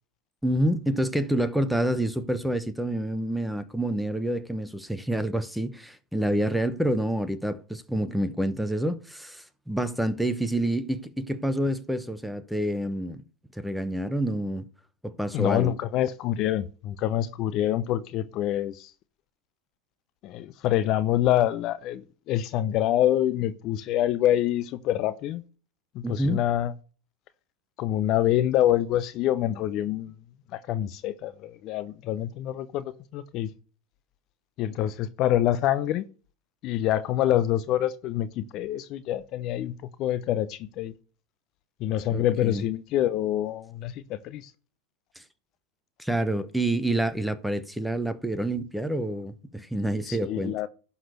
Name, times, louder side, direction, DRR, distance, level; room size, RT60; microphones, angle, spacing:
voice 1, 0.4-13.2 13.6-14.7 15.0-15.7 26.0-26.4 42.1-42.6 45.2-45.3 46.0-50.6, right 1 dB, ahead, 1.0 m, -28 dB
voice 2, 15.3-18.9 20.2-25.4 25.9-26.7 27.8-30.1 30.5-33.5 34.6-36.1 36.6-39.7 40.0-40.9 41.8-44.5 50.1-50.7, left 12 dB, 45° left, 0.7 m, -26 dB
11.5 x 4.1 x 8.0 m
hypercardioid pair, 100°, 0 cm